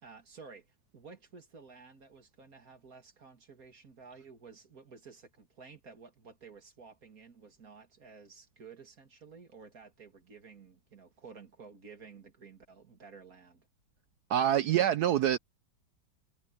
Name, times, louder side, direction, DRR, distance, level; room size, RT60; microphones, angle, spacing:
voice 1, 0.0-13.7, right 5 dB, 50° right, 2.8 m, -53 dB
voice 2, 14.3-15.4, right 11 dB, 70° right, 1.0 m, -26 dB
omnidirectional pair, 2.0 m